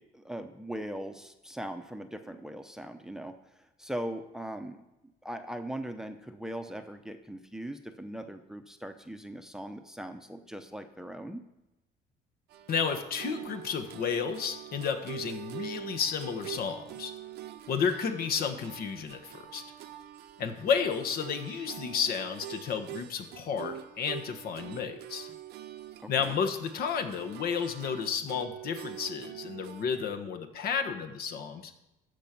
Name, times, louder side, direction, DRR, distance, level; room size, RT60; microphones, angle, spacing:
voice 1, 0.0-4.8 5.2-11.4 26.0-26.4, right 1 dB, 5° right, 7 dB, 0.7 m, -40 dB
sound 1, 12.5-30.1, right 11 dB, 75° right, 0.7 m, -45 dB
voice 2, 12.7-17.1 17.7-19.6 20.4-25.3 26.1-31.7, left 6 dB, 65° left, 6 dB, 1.2 m, -32 dB
14.0 x 5.3 x 6.0 m, 0.96 s
cardioid pair, 110°, 17 cm